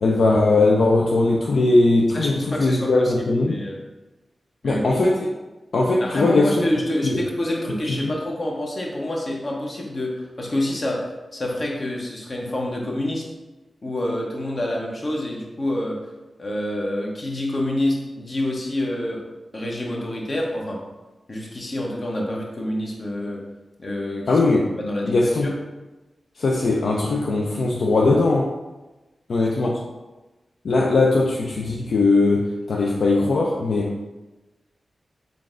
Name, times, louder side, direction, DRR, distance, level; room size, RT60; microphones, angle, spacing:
voice 1, 0.0-3.6 4.6-5.3 5.7-6.7 7.0-7.2 7.9-8.0 24.3-24.7 25.0-25.5 26.4-28.5 29.3-29.8 30.6-34.1, left 2 dB, 75° left, -2 dB, 0.4 m, -19 dB
voice 2, 2.1-3.8 4.6-5.0 6.0-13.2 13.8-16.0 16.4-19.2 19.5-20.8 21.3-23.4 23.8-24.3 24.8-25.5 29.6-29.7, left 1 dB, 50° left, -1 dB, 0.9 m, -27 dB
3.8 x 3.5 x 2.5 m, 1.1 s
cardioid pair, 45°, 0 cm